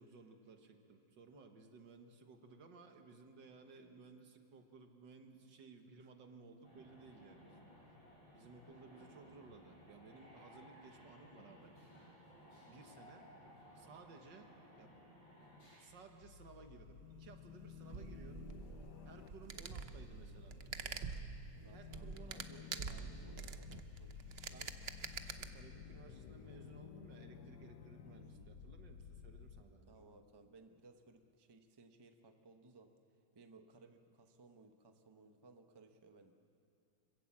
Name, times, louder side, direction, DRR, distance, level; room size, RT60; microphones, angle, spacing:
voice 1, 0.0-8.0 8.3-11.8 12.7-13.3 13.7-15.1 15.8-21.0 21.7-22.9 24.5-24.7 25.4-30.0, right 4 dB, 70° right, 5 dB, 2.1 m, -59 dB
sound 1, 6.6-15.8, equal, 85° left, 8.1 m, -60 dB
sound 2, 15.9-29.6, left 7 dB, 70° left, 1.3 m, -54 dB
sound 3, 16.9-25.5, right 6 dB, 50° right, 0.7 m, -47 dB
voice 2, 21.6-24.6 28.1-28.5 29.9-32.9 33.3-36.3, right 3 dB, 20° right, 5 dB, 0.7 m, -62 dB
26.0 x 16.5 x 7.5 m, 2.6 s
omnidirectional pair, 2.0 m